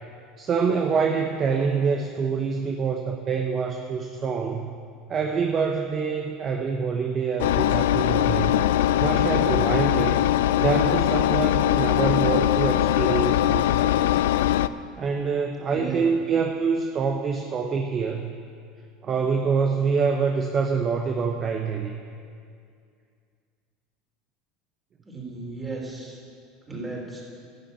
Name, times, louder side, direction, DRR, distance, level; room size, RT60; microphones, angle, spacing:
voice 1, 0.4-4.7 5.1-8.7 9.0-10.2 10.6-14.2 15.0-18.4 19.0-21.9, right 5 dB, 40° right, 4 dB, 0.8 m, -26 dB
Engine, 7.4-14.7, left 12 dB, 80° left, 0.3 m, -21 dB
voice 2, 15.7-16.0 25.0-26.2 26.7-27.2, right 3 dB, 20° right, -2 dB, 3.9 m, -35 dB
12.0 x 7.5 x 8.2 m, 2.3 s
hypercardioid pair, 90°, 0 cm